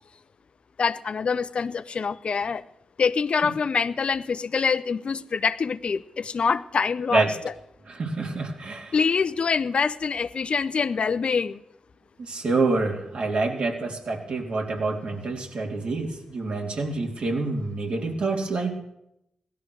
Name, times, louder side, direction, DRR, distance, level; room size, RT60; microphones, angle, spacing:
voice 1, 0.8-2.6 3.0-7.3 8.9-11.6, left 5 dB, 55° left, 13 dB, 0.7 m, -25 dB
voice 2, 7.9-9.0 12.2-18.8, right 3 dB, 65° right, 0 dB, 3.3 m, -27 dB
17.0 x 13.0 x 6.4 m, 0.82 s
supercardioid pair, 40°, 2 cm